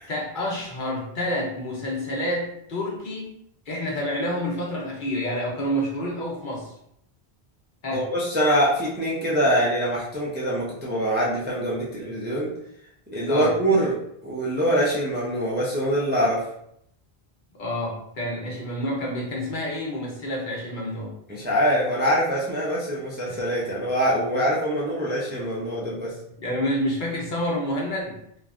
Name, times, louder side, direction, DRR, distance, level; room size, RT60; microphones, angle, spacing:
voice 1, 0.1-3.3 3.7-6.7 7.8-8.1 13.3-13.5 17.6-21.1 23.3-23.4 26.4-28.2, equal, 50° left, -2 dB, 0.9 m, -28 dB
voice 2, 7.9-12.5 13.1-13.9 14.2-16.4 21.3-26.1, equal, 15° right, -5 dB, 0.4 m, -24 dB
3.1 x 2.3 x 2.4 m, 0.72 s
omnidirectional pair, 1.1 m